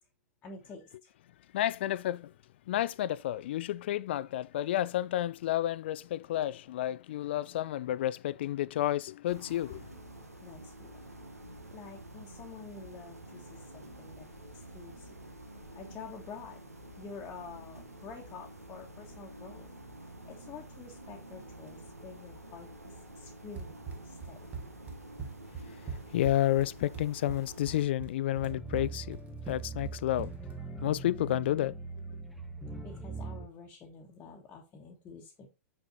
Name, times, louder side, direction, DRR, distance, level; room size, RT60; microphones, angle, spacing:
voice 1, 0.4-0.8 10.4-10.9 11.7-14.3 14.7-15.1 15.7-16.6 17.0-19.7 20.3-23.7 24.0-24.4 32.8-35.5, left 4 dB, 20° left, 1.2 m, -48 dB
voice 2, 1.5-2.3 2.7-9.8 26.1-29.2 29.5-30.3 30.8-31.7, left 13 dB, 45° left, 0.3 m, -30 dB
sound 1, 9.3-27.9, right 1 dB, 85° right, 1.5 m, -49 dB
Run, 23.6-30.6, right 5 dB, 15° right, 1.2 m, -43 dB
sound 2, 28.4-33.5, right 4 dB, ahead, 0.8 m, -41 dB
6.3 x 6.0 x 2.6 m
figure-of-eight pair, 110°, 8 cm